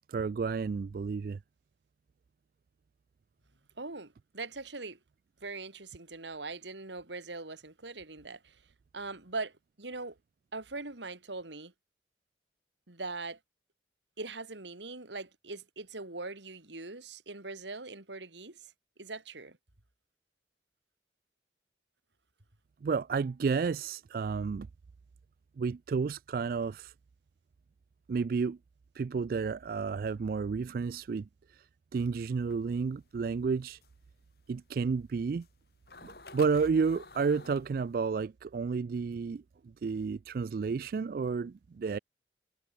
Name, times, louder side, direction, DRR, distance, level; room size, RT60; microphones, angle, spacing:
voice 1, 0.1-1.4 22.8-24.7 25.6-26.9 28.1-28.6 28.9-31.7 31.9-33.8 34.5-35.5 36.0-39.4 39.8-42.0, right 5 dB, 50° right, 0.3 m, -31 dB
voice 2, 3.8-5.0 5.4-8.6 8.9-10.2 10.5-11.7 12.9-13.4 14.2-18.7 19.0-19.6, right 3 dB, 80° right, 2.8 m, -41 dB
sound 1, 31.9-38.1, left 3 dB, 60° left, 5.5 m, -52 dB
head